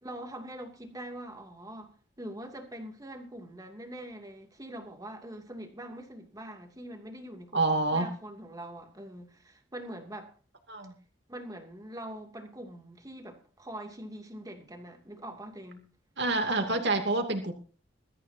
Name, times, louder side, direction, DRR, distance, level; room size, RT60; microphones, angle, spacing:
voice 1, 0.0-10.3 11.3-15.9, right 1 dB, 20° right, 2.6 m, -43 dB
voice 2, 7.5-8.1 10.7-10.9 16.2-17.5, right 2 dB, 65° right, 2.6 m, -27 dB
21.5 x 13.5 x 2.8 m
head